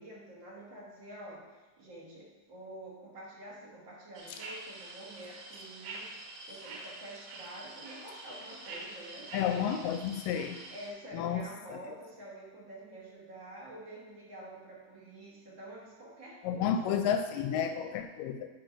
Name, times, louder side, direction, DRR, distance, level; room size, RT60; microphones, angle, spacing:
voice 1, 0.0-9.3 10.7-16.9, right 1 dB, 55° right, -4 dB, 1.4 m, -48 dB
sound 1, 4.1-10.9, right 2 dB, 75° right, 2.7 m, -46 dB
voice 2, 9.3-10.6 11.1-11.4 16.4-18.5, left 8 dB, 80° left, 6 dB, 2.1 m, -31 dB
9.1 x 4.3 x 5.0 m, 1.2 s
omnidirectional pair, 4.1 m